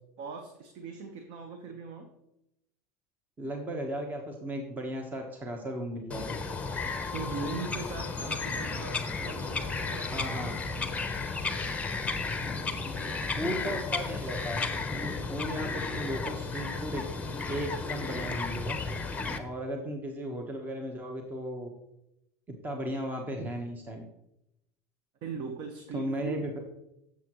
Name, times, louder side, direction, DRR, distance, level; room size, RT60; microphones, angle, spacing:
voice 1, 0.2-2.1 7.1-11.2 25.2-26.4, right 4 dB, 55° right, 5 dB, 1.1 m, -40 dB
voice 2, 3.4-6.4 10.1-10.6 12.8-12.9 13.3-14.6 14.9-17.0 17.5-18.8 19.4-21.7 22.6-24.0 25.9-26.5, right 1 dB, 20° right, 2 dB, 1.2 m, -35 dB
Bird vocalization bird call bird song, 6.1-19.4, left 4 dB, 15° left, 0.9 m, -33 dB
10.0 x 7.5 x 3.1 m, 0.85 s
supercardioid pair, 110°, 9 cm